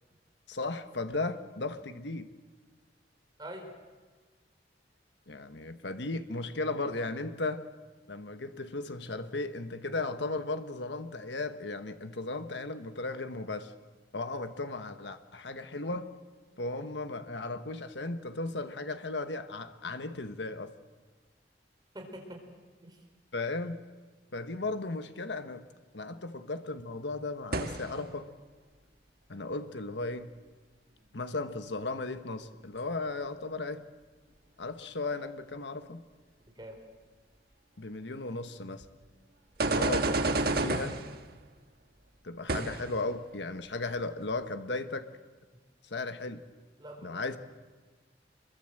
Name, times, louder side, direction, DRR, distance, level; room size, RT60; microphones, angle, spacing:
voice 1, 0.5-2.3 5.3-7.7 8.1-13.7 14.1-16.1 16.6-20.7 23.3-23.8 24.3-25.7 25.9-28.3 29.3-30.3 31.1-33.9 34.6-36.0 37.8-38.8 39.6-41.0 42.2-45.1 45.8-46.5 47.0-47.4, left 2 dB, 75° left, 9 dB, 1.2 m, -36 dB
voice 2, 3.4-3.7 21.9-22.4 22.8-23.0 36.5-36.8 46.8-47.2, right 1 dB, 25° right, 2 dB, 4.7 m, -44 dB
sound 1, 27.5-28.0 38.8-38.9 39.6-41.2 42.5-43.0, right 2 dB, 55° right, 1.5 m, -29 dB
27.0 x 23.0 x 7.7 m, 1.4 s
head